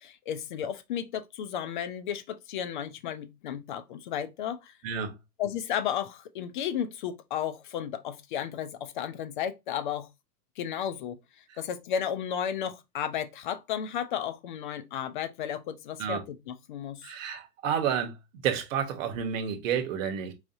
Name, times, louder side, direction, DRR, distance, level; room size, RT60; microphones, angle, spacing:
voice 1, 0.0-4.7 5.4-10.1 10.6-11.2 11.6-17.1, left 9 dB, 35° left, 0.4 m, -33 dB
voice 2, 4.8-5.1 11.5-11.6 16.0-16.2 17.0-18.2 18.4-20.3, right 8 dB, 50° right, 1.1 m, -30 dB
4.8 x 2.6 x 2.6 m
hypercardioid pair, 125°, 49 cm